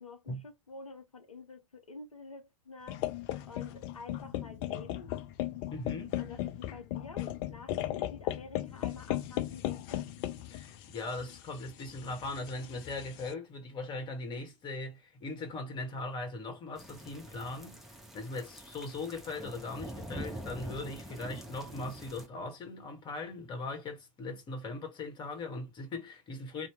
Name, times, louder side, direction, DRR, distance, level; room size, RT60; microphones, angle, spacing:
voice 1, 0.0-3.0 3.5-5.2 6.2-10.1, left 3 dB, 85° left, 0.6 m, -49 dB
sound 1, 2.9-13.3, left 13 dB, 45° left, 0.5 m, -37 dB
voice 2, 5.7-6.2 10.5-17.8 18.1-26.7, left 2 dB, 25° left, 1.1 m, -39 dB
sound 2, 16.8-22.3, right 1 dB, ahead, 0.8 m, -45 dB
2.8 x 2.0 x 3.1 m
figure-of-eight pair, 90°, 17 cm